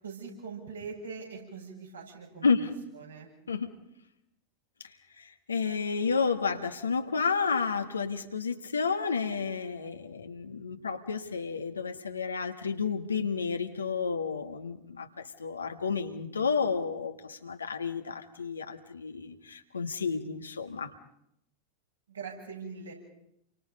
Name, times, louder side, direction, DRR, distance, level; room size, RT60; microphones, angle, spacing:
voice 1, 0.0-2.7 2.9-3.3 22.1-22.9, right 5 dB, 75° right, -1 dB, 7.7 m, -42 dB
voice 2, 5.2-20.9, left 5 dB, 75° left, 6 dB, 1.6 m, -31 dB
30.0 x 24.5 x 5.4 m, 0.78 s
figure-of-eight pair, 90°, 0 cm